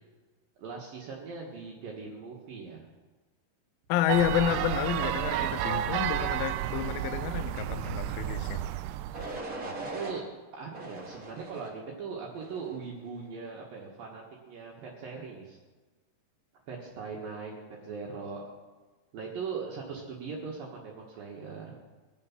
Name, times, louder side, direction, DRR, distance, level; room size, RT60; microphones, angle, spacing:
voice 1, 0.6-2.8 9.6-10.2 10.5-15.6 16.7-18.4 19.1-21.8, right 5 dB, 65° right, -2 dB, 3.2 m, -40 dB
voice 2, 3.9-8.6, left 12 dB, 75° left, 10 dB, 2.4 m, -30 dB
sound 1, 4.1-9.4, right 13 dB, 85° right, 2.7 m, -31 dB
sound 2, 8.2-8.6 9.1-10.2 10.7-11.8 12.3-12.8, right 2 dB, 40° right, 1.2 m, -40 dB
22.5 x 7.6 x 6.1 m, 1.3 s
omnidirectional pair, 4.7 m